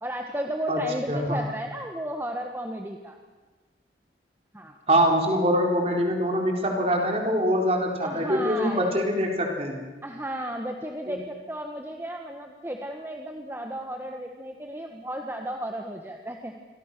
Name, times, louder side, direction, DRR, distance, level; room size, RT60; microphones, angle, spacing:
voice 1, 0.0-3.2 4.5-4.8 8.0-9.0 10.0-16.5, right 1 dB, 10° right, 3 dB, 1.5 m, -33 dB
voice 2, 1.1-1.4 4.9-9.8 11.1-11.2, equal, 35° right, 1 dB, 4.3 m, -24 dB
28.0 x 24.0 x 6.8 m, 1.3 s
head